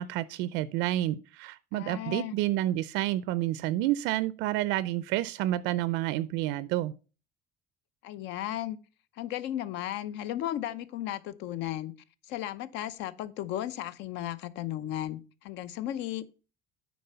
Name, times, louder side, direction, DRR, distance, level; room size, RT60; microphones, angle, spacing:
voice 1, 0.0-6.9, right 14 dB, 75° right, 0.5 m, -29 dB
voice 2, 1.7-2.3 8.0-8.8 9.2-11.9 12.3-16.3, left 12 dB, 65° left, 0.7 m, -35 dB
9.4 x 4.2 x 5.5 m
cardioid pair, 165°, 20 cm